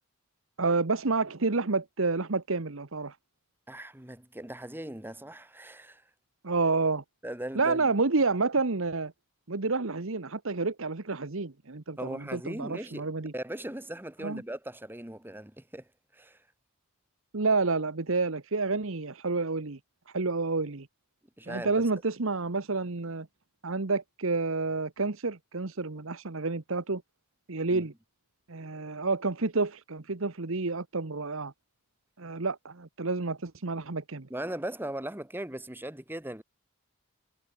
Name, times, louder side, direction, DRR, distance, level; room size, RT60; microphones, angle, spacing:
voice 1, 0.6-3.2 6.4-7.0 7.5-9.1 9.5-13.3 14.2-14.4 17.3-19.8 20.1-20.9 21.5-23.3 23.6-27.0 27.5-27.9 28.5-31.5 32.2-34.3, right 3 dB, 60° right, 1.1 m, -29 dB
voice 2, 3.7-6.0 7.2-7.9 12.0-16.4 21.4-21.7 27.7-27.9 34.3-36.4, right 1 dB, 10° right, 1.5 m, -39 dB
head